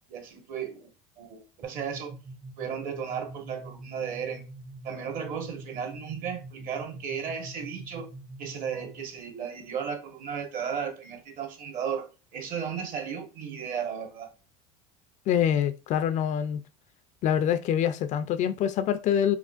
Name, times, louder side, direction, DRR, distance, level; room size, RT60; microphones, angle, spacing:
voice 1, 0.1-0.9 1.2-2.1 2.6-4.4 4.8-8.1 8.4-14.3, right 7 dB, 50° right, 1.4 m, -35 dB
sound 1, 1.6-9.2, right 2 dB, 20° right, 0.6 m, -45 dB
voice 2, 15.3-16.6 17.2-19.4, left 9 dB, 45° left, 0.4 m, -25 dB
4.9 x 3.3 x 2.5 m
supercardioid pair, 125°, 18 cm